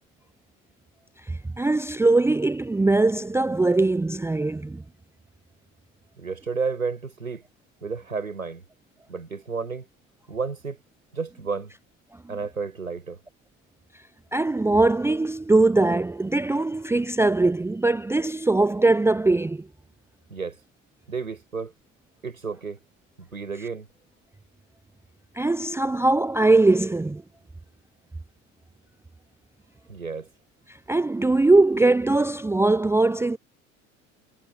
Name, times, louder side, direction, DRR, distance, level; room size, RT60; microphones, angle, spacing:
voice 1, 1.3-4.8 14.3-19.7 25.4-27.2 30.9-33.4, right 2 dB, 5° right, 0.6 m, -21 dB
voice 2, 6.2-7.4 7.8-8.6 9.1-9.9 10.3-10.8 11.1-11.7 12.3-13.2 20.3-20.6 21.1-21.7 22.2-22.8 23.2-23.9 29.9-30.3, right 5 dB, 85° right, 7.4 m, -31 dB
figure-of-eight pair, 65°, 40 cm